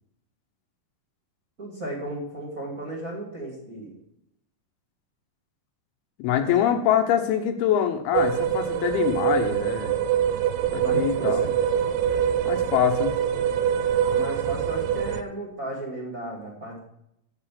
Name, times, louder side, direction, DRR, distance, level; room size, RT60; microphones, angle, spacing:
voice 1, 1.6-3.9 6.3-6.6 10.8-11.5 14.0-16.8, right 1 dB, 25° right, -3 dB, 2.0 m, -35 dB
voice 2, 6.2-10.0 10.7-11.4 12.5-13.1, left 10 dB, 80° left, 6 dB, 2.8 m, -24 dB
sound 1, 8.1-15.2, right 9 dB, 90° right, 2.6 m, -24 dB
8.1 x 6.9 x 7.4 m, 0.78 s
omnidirectional pair, 4.5 m